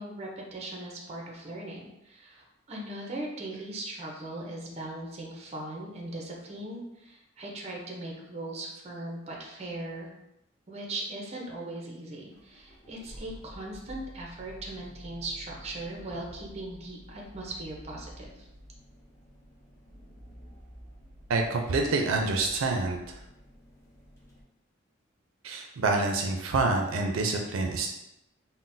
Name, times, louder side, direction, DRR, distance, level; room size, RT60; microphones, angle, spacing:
voice 1, 0.0-10.1 10.7-18.5, right 1 dB, 30° right, -1 dB, 0.6 m, -39 dB
sound 1, 12.3-24.4, equal, 15° left, 0.7 m, -50 dB
voice 2, 21.3-23.0 25.4-27.9, right 3 dB, 85° right, 2 dB, 0.4 m, -27 dB
3.7 x 2.1 x 2.6 m, 0.88 s
head